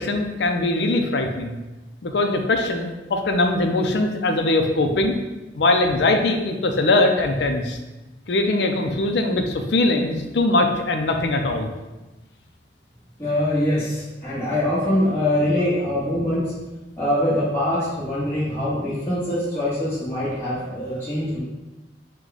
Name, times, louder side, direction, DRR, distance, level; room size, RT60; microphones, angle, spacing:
voice 1, 0.0-1.6 2.0-5.2 5.5-7.8 8.3-11.7, left 2 dB, 75° left, 4 dB, 0.5 m, -21 dB
voice 2, 13.2-16.5 17.0-21.4, left 1 dB, 15° left, -12 dB, 0.9 m, -23 dB
4.7 x 2.2 x 3.9 m, 1.1 s
head